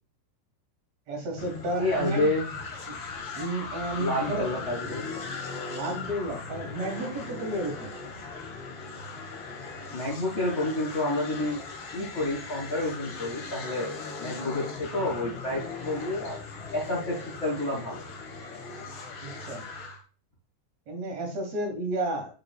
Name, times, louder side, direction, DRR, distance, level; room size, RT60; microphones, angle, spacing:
voice 1, 1.1-2.3 2.9-3.0 3.4-4.5 5.7-7.9 19.2-19.6 20.9-22.3, right 1 dB, 55° right, 3 dB, 2.3 m, -32 dB
sound 1, 1.4-20.0, left 4 dB, 60° left, 1.5 m, -39 dB
voice 2, 1.8-2.5 4.0-5.0 9.9-11.6 11.9-16.4 16.7-18.0, left 1 dB, 40° left, -4 dB, 1.0 m, -29 dB
8.8 x 4.9 x 2.3 m, 0.37 s
omnidirectional pair, 4.4 m